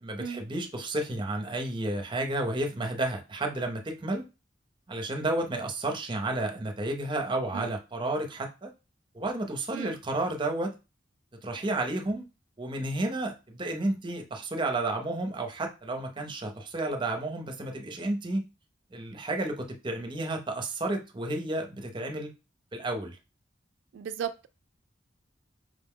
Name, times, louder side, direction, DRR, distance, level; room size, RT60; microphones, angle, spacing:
voice 1, 0.0-4.2 4.9-8.7 9.1-10.7 11.4-12.2 12.6-18.4 18.9-22.3 22.7-23.2, right 2 dB, 25° right, 0.6 m, -31 dB
voice 2, 23.9-24.5, right 8 dB, 85° right, 0.3 m, -35 dB
5.0 x 2.1 x 3.6 m
head